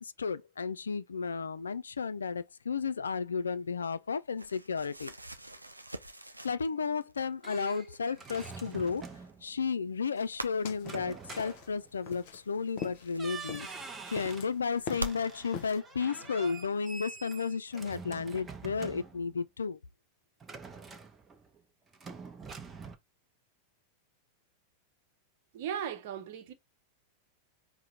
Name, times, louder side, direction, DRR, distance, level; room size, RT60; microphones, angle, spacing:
voice 1, 0.0-5.1 6.4-9.0 9.4-13.7 14.1-19.8, left 5 dB, 70° left, 0.3 m, -33 dB
sound 1, 4.4-7.1 7.4-9.6 10.4-10.7 11.9-14.2 14.9-15.2 16.2-16.3 16.7-17.6, equal, 85° right, 0.4 m, -45 dB
sound 2, 7.0-9.5 10.8-12.1 12.8-12.9 13.2-14.5 14.9-19.4 20.4-21.6 21.9-23.0, right 5 dB, 15° right, 0.7 m, -46 dB
sound 3, 10.2-15.8, left 7 dB, 50° left, 0.7 m, -44 dB
voice 2, 25.5-26.5, right 9 dB, 50° right, 0.8 m, -37 dB
4.9 x 2.0 x 4.2 m
figure-of-eight pair, 90°, 0 cm